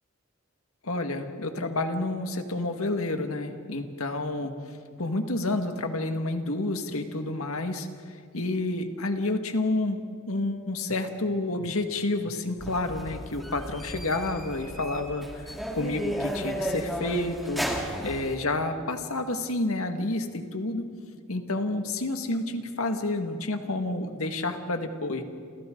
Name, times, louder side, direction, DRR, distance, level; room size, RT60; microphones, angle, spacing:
voice 1, 0.8-4.5 5.0-7.9 8.3-10.0 10.3-17.6 18.0-20.9 21.3-25.2, left 2 dB, 80° left, 5 dB, 1.9 m, -29 dB
sound 1, 12.6-18.4, equal, ahead, 2.3 m, -34 dB
29.5 x 28.5 x 3.9 m, 2.2 s
head